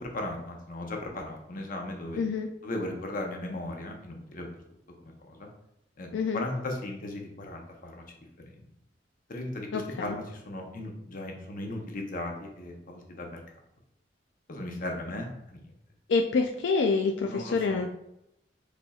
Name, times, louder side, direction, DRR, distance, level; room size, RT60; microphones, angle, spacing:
voice 1, 0.0-2.2 2.6-4.6 5.0-5.5 6.0-8.1 8.5-8.7 9.3-13.4 14.5-15.6 17.2-17.8, left 1 dB, 50° left, 2 dB, 0.8 m, -37 dB
voice 2, 2.1-2.5 6.1-6.4 9.7-10.1 16.1-17.8, left 4 dB, 85° left, 3 dB, 0.4 m, -27 dB
5.2 x 4.1 x 2.4 m, 0.82 s
head